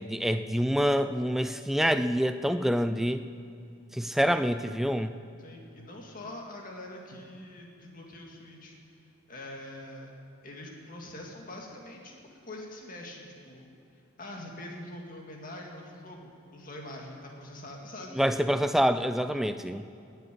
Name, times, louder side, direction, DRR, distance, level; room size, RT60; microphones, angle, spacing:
voice 1, 0.0-3.2 3.9-5.1 18.1-19.8, equal, ahead, 10 dB, 0.3 m, -26 dB
voice 2, 5.4-8.8 9.3-10.1 10.4-12.2 12.5-13.7 14.2-18.2, left 1 dB, 40° left, 0 dB, 2.1 m, -44 dB
20.0 x 6.9 x 8.4 m, 2.5 s
head